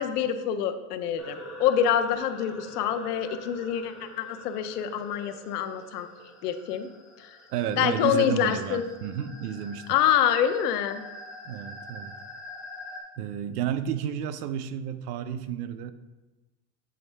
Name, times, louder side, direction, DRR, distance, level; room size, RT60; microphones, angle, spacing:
voice 1, 0.0-6.1 6.4-6.9 7.8-8.8 9.9-11.0, left 9 dB, 90° left, 9 dB, 0.7 m, -26 dB
sound 1, 1.2-13.0, left 1 dB, ahead, 0.3 m, -45 dB
voice 2, 7.5-10.0 11.4-12.1 13.2-15.9, right 9 dB, 80° right, 12 dB, 0.6 m, -31 dB
7.7 x 4.4 x 3.3 m, 1.2 s
supercardioid pair, 165°, 46 cm